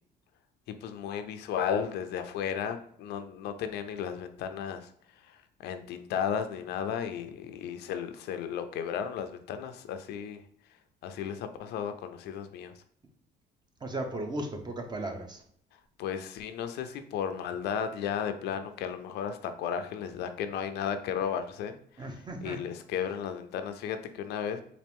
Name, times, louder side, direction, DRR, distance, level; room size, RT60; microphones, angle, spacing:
voice 1, 0.8-4.9 5.2-10.4 11.0-12.7 16.0-21.8 22.4-24.6, left 8 dB, 80° left, 8 dB, 0.5 m, -34 dB
voice 2, 13.8-15.4 22.0-22.6, right 1 dB, 25° right, 4 dB, 0.7 m, -36 dB
4.2 x 2.5 x 3.4 m, 0.64 s
cardioid pair, 110°, 17 cm